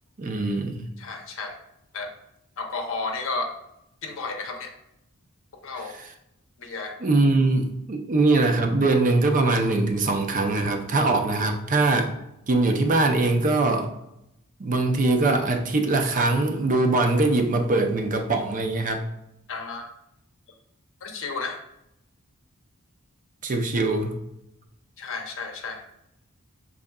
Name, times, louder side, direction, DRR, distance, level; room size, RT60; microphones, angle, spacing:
voice 1, 0.2-0.9 5.8-6.1 7.0-12.1 12.5-13.9 14.6-19.0 23.4-24.2, right 2 dB, 35° right, 5 dB, 0.5 m, -22 dB
voice 2, 1.0-1.6 1.9-2.1 2.6-3.5 4.0-4.7 5.6-6.0 6.6-6.9 19.5-19.9 21.0-21.6 25.0-25.8, left 3 dB, 60° left, 4 dB, 0.7 m, -32 dB
6.1 x 3.6 x 2.2 m, 0.83 s
head